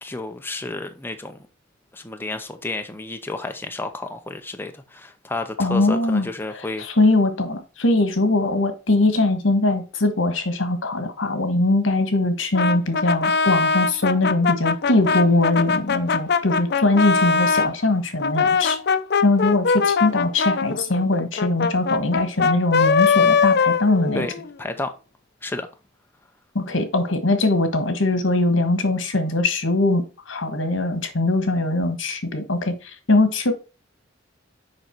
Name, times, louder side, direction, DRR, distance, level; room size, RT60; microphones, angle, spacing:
voice 1, 0.0-1.4 1.9-6.9 24.1-24.9 25.4-25.7, left 2 dB, 10° left, 0.6 m, -31 dB
voice 2, 5.6-6.3 6.8-18.8 19.2-24.2 26.5-33.5, left 2 dB, 75° left, 1.5 m, -21 dB
Brass instrument, 12.5-17.7 18.2-24.5, left 5 dB, 55° left, 0.6 m, -21 dB
6.7 x 5.2 x 4.5 m
head